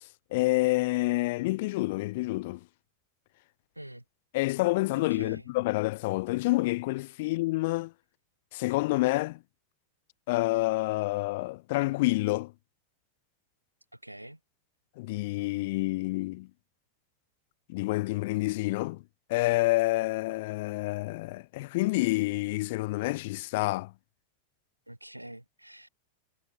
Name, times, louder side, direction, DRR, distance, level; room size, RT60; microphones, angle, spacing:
voice 1, 0.3-2.6 4.3-7.9 8.5-9.4 10.3-12.5 15.0-16.5 17.7-19.0 19.3-23.9, left 21 dB, 50° left, 0.4 m, -28 dB
voice 2, 3.7-4.0 4.9-5.5 7.2-7.3 13.9-14.4 24.9-25.9, right 1 dB, 85° right, 0.7 m, -45 dB
figure-of-eight pair, 90°, 0 cm